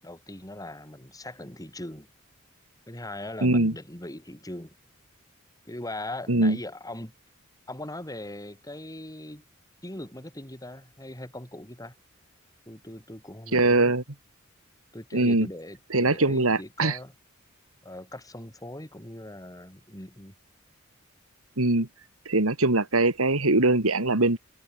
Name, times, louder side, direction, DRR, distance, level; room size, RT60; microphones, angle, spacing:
voice 1, 0.0-2.1 2.9-4.7 5.7-7.1 7.7-9.4 9.8-11.9 12.7-14.0 14.9-17.1 17.8-20.3, left 1 dB, 15° left, 7.6 m, -40 dB
voice 2, 3.4-3.7 6.3-6.6 13.5-14.0 15.1-15.5 15.9-17.0 21.6-21.9 22.3-24.4, right 2 dB, 85° right, 2.7 m, -22 dB
head